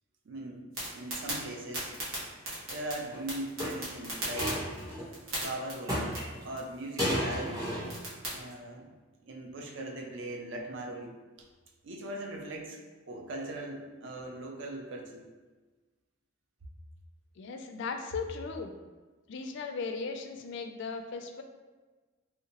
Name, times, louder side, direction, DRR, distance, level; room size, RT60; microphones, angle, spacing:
voice 1, 0.3-1.9 2.7-4.6 5.3-7.7 8.3-9.0 9.3-11.2 11.8-12.8 13.1-15.3, right 1 dB, 65° right, 1 dB, 0.5 m, -40 dB
sound 1, 0.7-8.4, right 1 dB, 90° right, 1.2 m, -40 dB
sound 2, 3.1-3.2 3.6-5.1 5.9-6.5 7.0-8.1 8.3-8.5, equal, 20° right, 1.1 m, -33 dB
voice 2, 17.4-18.7 19.3-21.4, left 4 dB, 60° left, 5 dB, 0.3 m, -37 dB
3.3 x 2.8 x 2.9 m, 1.3 s
head